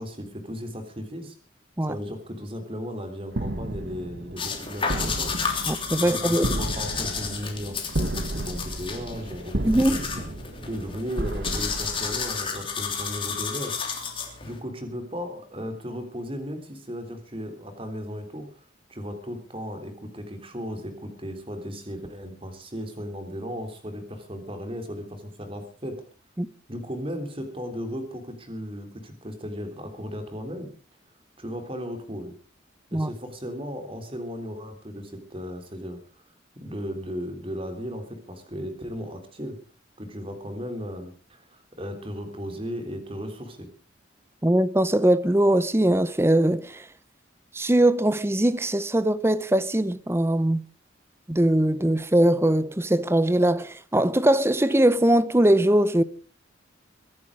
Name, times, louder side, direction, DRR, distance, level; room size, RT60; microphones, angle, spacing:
voice 1, 0.0-1.3 1.9-5.3 6.0-10.2 10.6-13.7 14.4-18.6 18.9-26.0 26.7-30.7 31.4-32.4 32.9-36.0 36.5-39.6 40.0-43.7, equal, 30° right, 3.2 m, -36 dB
sound 1, 3.3-12.8, right 1 dB, 60° right, 1.5 m, -33 dB
sound 2, 4.4-14.6, left 5 dB, 25° left, 3.1 m, -32 dB
voice 2, 5.7-6.5 9.6-10.0 26.4-26.5 32.9-33.1 44.4-46.9 47.5-50.6 51.3-56.0, right 1 dB, 15° right, 0.7 m, -21 dB
23.0 x 11.0 x 4.9 m
head